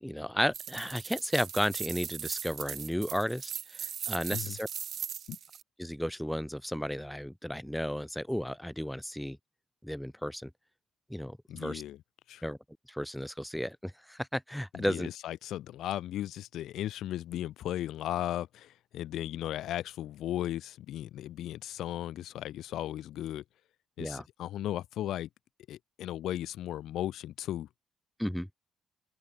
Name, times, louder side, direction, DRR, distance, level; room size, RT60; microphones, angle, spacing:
voice 1, 0.0-4.7 5.8-9.4 9.8-10.5 11.1-11.8 12.4-12.6 12.9-15.1 24.0-24.2 28.2-28.5, equal, ahead, 1.2 m, -33 dB
sound 1, 0.5-5.6, right 8 dB, 60° right, 3.1 m, -39 dB
voice 2, 11.5-12.0 12.3-12.4 14.7-23.4 24.0-25.3 25.7-27.7, left 12 dB, 80° left, 1.5 m, -36 dB
open air
cardioid pair, 90°, 0 cm